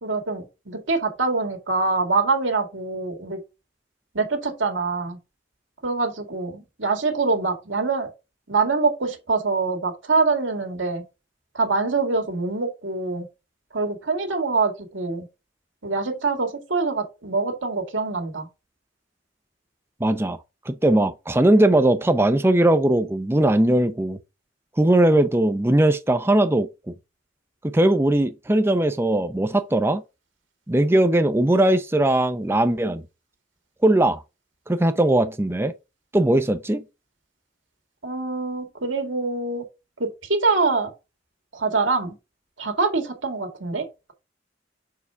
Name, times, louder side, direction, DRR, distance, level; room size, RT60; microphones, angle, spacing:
voice 1, 0.0-3.4 4.1-5.2 5.8-8.1 8.5-11.0 11.5-13.3 13.7-15.3 15.8-18.5 38.0-39.7 40.0-40.9 41.5-42.2 42.6-43.9, right 3 dB, 70° right, 2.0 m, -24 dB
voice 2, 20.0-20.4 20.7-24.2 24.8-26.7 27.6-30.0 30.7-33.0 33.8-34.2 34.7-35.7 36.1-36.8, right 1 dB, 10° right, 0.5 m, -19 dB
4.8 x 4.8 x 5.7 m
head